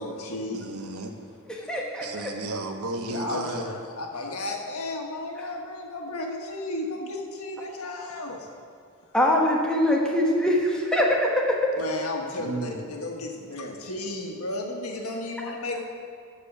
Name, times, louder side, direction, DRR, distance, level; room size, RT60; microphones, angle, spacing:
voice 1, 0.0-0.6 3.1-8.5 11.8-15.8, left 2 dB, 80° left, 1 dB, 1.5 m, -33 dB
voice 2, 0.5-1.1 2.0-3.7 12.4-12.8, right 2 dB, 80° right, 5 dB, 0.9 m, -33 dB
voice 3, 1.5-2.3 9.1-11.7, left 1 dB, 5° left, -2 dB, 1.3 m, -23 dB
14.0 x 4.8 x 5.9 m, 2.4 s
head